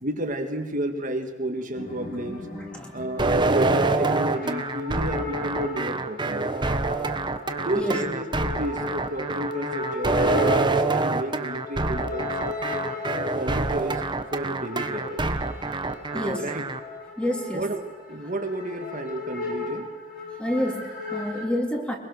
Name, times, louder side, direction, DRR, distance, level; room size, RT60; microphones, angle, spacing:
voice 1, 0.0-2.5 2.9-6.5 7.5-12.3 13.2-15.3 16.1-16.6 17.5-19.9, right 1 dB, 45° right, 4 dB, 1.8 m, -31 dB
sound 1, 1.8-21.4, left 2 dB, 50° left, 6.1 m, -36 dB
sound 2, 3.2-16.8, right 3 dB, 25° right, 1.2 m, -26 dB
voice 2, 16.1-16.5 17.2-17.6 20.4-22.0, equal, 5° left, 2 dB, 3.1 m, -28 dB
23.5 x 22.0 x 6.6 m, 1.5 s
head